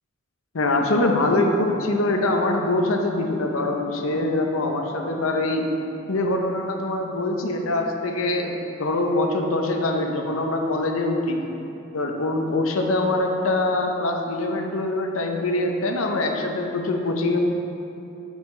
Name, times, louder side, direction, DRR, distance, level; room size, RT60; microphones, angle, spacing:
voice 1, 0.5-5.7 6.1-8.5 8.8-11.4 11.9-17.5, left 2 dB, 80° left, 3 dB, 0.7 m, -23 dB
7.1 x 5.7 x 4.3 m, 2.9 s
head